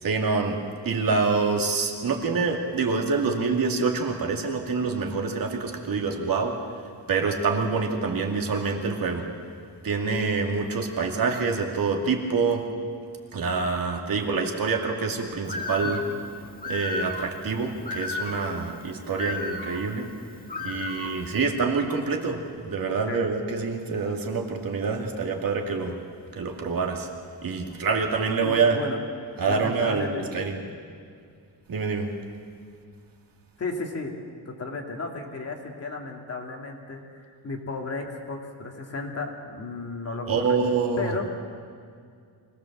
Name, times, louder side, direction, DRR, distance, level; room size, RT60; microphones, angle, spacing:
voice 1, 0.0-6.6 7.1-9.3 9.8-12.7 13.3-16.1 16.7-20.1 20.6-26.0 26.3-27.1 27.4-28.8 29.4-30.6 31.7-32.1 40.3-41.1, right 4 dB, 55° right, 2 dB, 2.4 m, -26 dB
Bird, 15.4-21.4, left 3 dB, 20° left, 1.7 m, -35 dB
voice 2, 28.4-29.0 29.5-30.6 33.6-34.1 34.5-40.6 41.0-41.4, left 3 dB, 35° left, 1 dB, 2.3 m, -34 dB
24.5 x 18.0 x 7.3 m, 2.2 s
wide cardioid pair, 170°, 42 cm